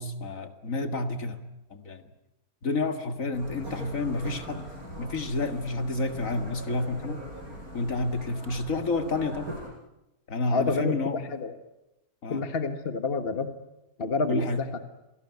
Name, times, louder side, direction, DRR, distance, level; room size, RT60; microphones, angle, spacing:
voice 1, 0.0-1.4 1.7-2.0 2.6-7.2 7.7-9.5 10.3-11.2 12.2-12.4 14.3-14.6, left 2 dB, 60° left, 8 dB, 2.2 m, -30 dB
sound 1, 3.3-9.7, right 1 dB, 70° right, 6.8 m, -41 dB
voice 2, 10.5-11.5 12.3-13.5 14.0-14.7, left 3 dB, 40° left, 8 dB, 1.7 m, -28 dB
27.5 x 18.0 x 9.5 m, 0.93 s
omnidirectional pair, 1.6 m